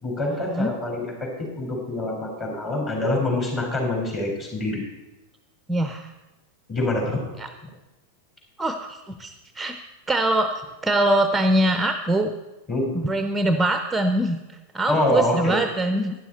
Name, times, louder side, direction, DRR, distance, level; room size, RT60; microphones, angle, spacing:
voice 1, 0.0-4.8 6.7-7.2 7.6-7.7 12.7-12.9 14.9-15.6, left 1 dB, 30° left, 0 dB, 4.0 m, -25 dB
voice 2, 5.7-6.1 7.4-7.5 8.6-9.8 10.1-10.5 10.8-12.3 12.9-16.1, right 1 dB, 10° right, 7 dB, 0.6 m, -23 dB
12.0 x 10.5 x 4.2 m, 1.1 s
figure-of-eight pair, 90°, 0 cm